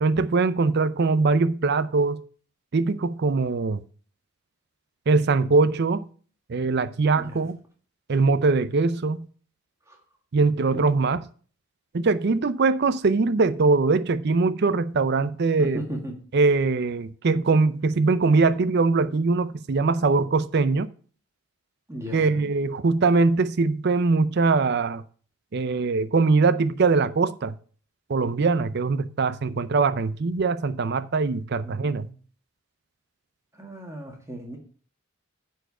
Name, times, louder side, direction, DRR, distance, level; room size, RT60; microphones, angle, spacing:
voice 1, 0.0-2.2 2.7-3.8 5.1-6.0 6.5-7.6 8.1-9.3 10.3-11.2 11.9-15.8 16.3-20.9 22.1-25.0 25.5-27.5 28.1-32.1, right 4 dB, 55° right, 0.5 m, -22 dB
voice 2, 15.6-16.1 21.9-22.5 31.6-32.1 33.6-34.6, equal, 15° right, 1.8 m, -35 dB
9.1 x 4.6 x 5.9 m
head